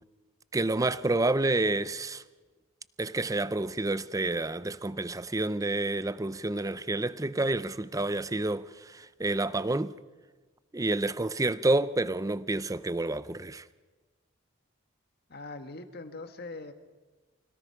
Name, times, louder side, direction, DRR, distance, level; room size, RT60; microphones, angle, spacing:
voice 1, 0.5-2.2 3.0-9.9 10.7-13.6, right 2 dB, 15° right, 0.5 m, -29 dB
voice 2, 15.3-16.7, left 3 dB, 50° left, 1.5 m, -41 dB
25.0 x 18.5 x 5.8 m
head